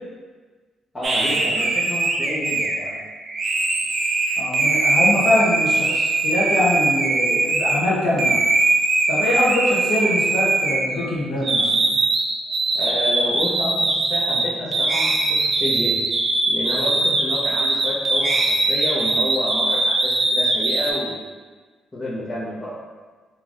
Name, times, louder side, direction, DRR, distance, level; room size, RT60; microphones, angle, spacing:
voice 1, 0.9-3.0 12.7-15.9 16.5-18.3 18.7-21.2 21.9-22.7, left 1 dB, 25° left, -13 dB, 1.1 m, -29 dB
sound 1, 1.0-7.8 8.2-11.1 11.4-20.9, right 2 dB, 40° right, 0.5 m, -21 dB
voice 2, 4.4-8.4 9.1-12.0, left 1 dB, 80° left, -6 dB, 0.9 m, -23 dB
3.7 x 3.2 x 2.4 m, 1.4 s
cardioid pair, 90°, 0 cm